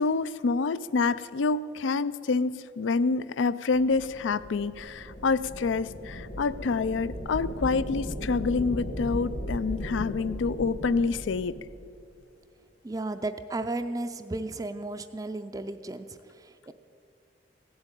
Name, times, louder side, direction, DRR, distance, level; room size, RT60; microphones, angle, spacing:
voice 1, 0.0-11.6, left 4 dB, 80° left, 17 dB, 0.4 m, -27 dB
sound 1, 3.7-11.8, equal, 60° left, 1.7 m, -37 dB
voice 2, 12.8-16.7, right 2 dB, 20° right, 8 dB, 0.4 m, -34 dB
16.5 x 8.0 x 9.0 m, 2.5 s
head